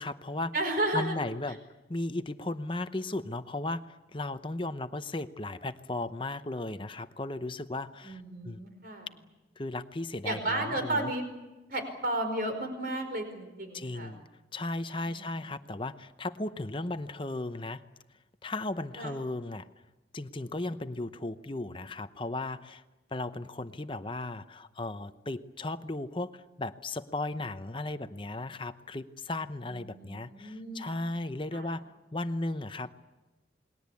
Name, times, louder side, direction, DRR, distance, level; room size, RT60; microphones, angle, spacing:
voice 1, 0.0-0.5 0.9-1.6 1.9-8.6 9.6-11.1 13.7-14.2 14.5-17.8 18.4-19.7 20.1-22.8 23.1-31.8 32.1-32.9, left 2 dB, 25° left, 10 dB, 0.8 m, -36 dB
voice 2, 0.5-1.2 8.0-9.1 10.2-11.2 11.7-14.1 15.1-15.3 19.0-19.1 29.7-30.9 31.5-31.7, right 1 dB, 50° right, 6 dB, 5.0 m, -33 dB
28.5 x 21.0 x 8.4 m, 1.1 s
head